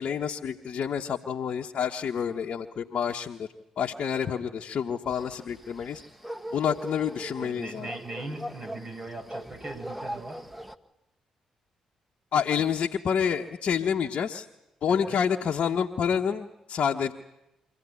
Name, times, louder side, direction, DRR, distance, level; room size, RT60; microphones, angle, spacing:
voice 1, 0.0-3.5 3.8-6.0 6.5-7.9 12.3-14.5 14.8-17.1, left 7 dB, 55° left, 1 dB, 1.2 m, -28 dB
sound 1, 5.1-10.8, equal, 5° right, 1.6 m, -40 dB
voice 2, 7.4-10.4 14.9-15.2, right 2 dB, 40° right, 4 dB, 6.0 m, -39 dB
25.5 x 16.0 x 9.8 m, 0.92 s
hypercardioid pair, 40°, 2 cm